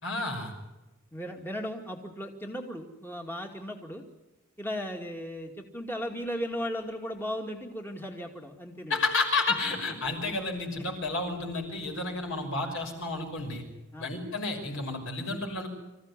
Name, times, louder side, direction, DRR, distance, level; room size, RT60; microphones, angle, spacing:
voice 1, 0.0-0.5 8.9-13.6 14.0-15.7, left 3 dB, 65° left, 4 dB, 6.0 m, -31 dB
voice 2, 1.1-4.0 4.6-9.0 12.6-12.8 13.9-14.1, equal, 10° left, 1 dB, 2.2 m, -36 dB
26.0 x 15.5 x 9.8 m, 1.0 s
head